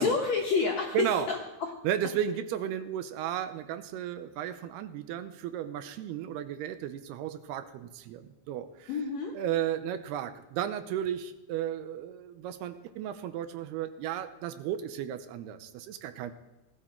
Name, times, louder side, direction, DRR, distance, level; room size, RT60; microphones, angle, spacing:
voice 1, 0.0-1.7 8.9-9.3, left 4 dB, 65° left, 0 dB, 1.7 m, -29 dB
voice 2, 0.9-1.3 1.8-8.9 9.3-16.3, right 10 dB, 80° right, 10 dB, 2.7 m, -34 dB
17.5 x 13.0 x 4.4 m, 0.98 s
omnidirectional pair, 4.8 m